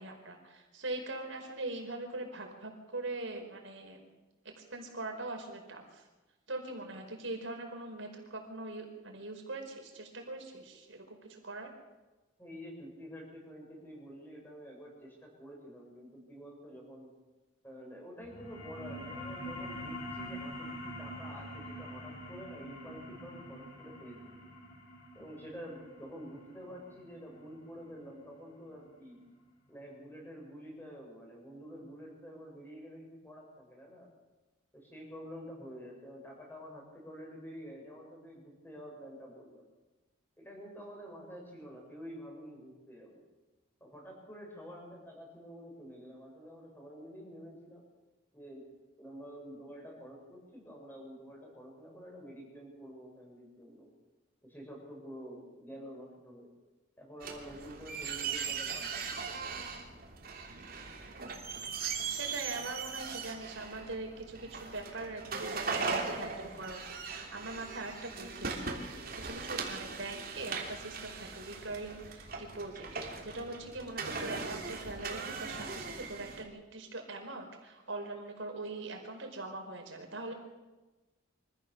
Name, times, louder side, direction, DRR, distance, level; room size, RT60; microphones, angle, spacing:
voice 1, 0.0-4.0 4.6-6.0 6.5-11.7 62.1-80.3, right 2 dB, 80° right, 2 dB, 4.9 m, -42 dB
voice 2, 12.4-17.2 17.6-24.4 25.1-29.2 29.7-34.1 34.7-39.6 40.4-43.2 43.8-47.8 48.3-48.7 48.9-53.9 54.4-56.5 57.0-59.2, equal, 10° left, -1 dB, 7.0 m, -48 dB
sound 1, 18.2-29.3, equal, 55° left, 6.3 m, -45 dB
sound 2, 57.2-76.4, right 5 dB, 50° right, 3.3 m, -39 dB
25.5 x 15.0 x 7.1 m, 1.1 s
head